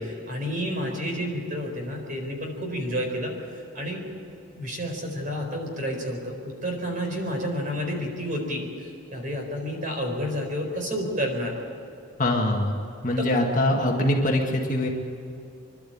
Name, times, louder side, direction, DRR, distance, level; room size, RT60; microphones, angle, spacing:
voice 1, 0.0-3.3 3.7-4.0 4.6-11.6 13.3-13.4, equal, 40° right, 2 dB, 4.5 m, -30 dB
voice 2, 12.2-12.8 13.0-14.9, left 1 dB, 35° left, 1 dB, 1.9 m, -23 dB
26.5 x 12.0 x 8.7 m, 2.6 s
head